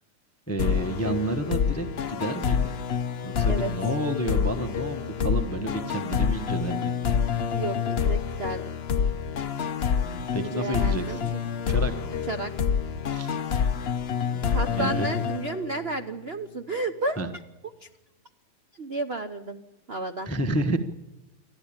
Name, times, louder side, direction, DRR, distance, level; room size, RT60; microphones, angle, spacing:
voice 1, 0.5-2.7 3.2-6.9 10.0-11.3 11.7-12.2 13.1-13.3 14.3-15.1 17.2-17.3 20.2-20.8, right 1 dB, 15° left, 7 dB, 0.6 m, -30 dB
sound 1, 0.6-16.0, left 7 dB, 70° left, 0.6 m, -27 dB
voice 2, 7.5-8.7 10.4-11.4 12.3-12.5 14.5-17.2 17.8-17.9 18.7-19.6 19.9-20.3, right 2 dB, 50° right, 7 dB, 0.7 m, -32 dB
28.5 x 12.0 x 8.8 m, 1.0 s
omnidirectional pair, 2.3 m